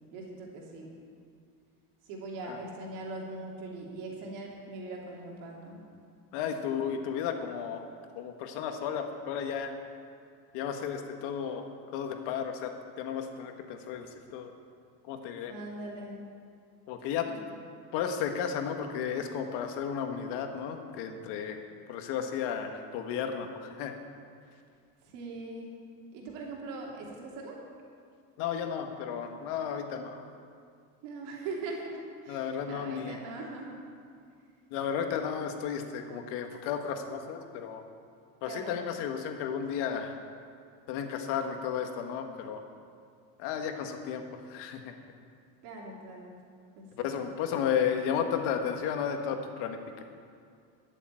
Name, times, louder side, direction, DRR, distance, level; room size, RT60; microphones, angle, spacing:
voice 1, 0.1-1.0 2.0-5.8 15.4-16.2 17.3-17.4 25.0-25.8 26.1-27.6 31.0-33.8 38.4-38.8 45.6-46.4 46.8-47.1, right 2 dB, 80° right, -2 dB, 2.9 m, -41 dB
voice 2, 6.3-7.8 8.1-9.7 10.5-14.5 15.0-15.5 16.9-17.3 17.9-21.6 21.9-23.9 28.4-30.3 32.3-33.2 34.7-37.8 38.4-40.1 40.9-42.6 43.4-44.9 46.9-50.0, left 7 dB, 75° left, 5 dB, 1.6 m, -33 dB
13.0 x 7.1 x 9.1 m, 2.3 s
cardioid pair, 125°, 42 cm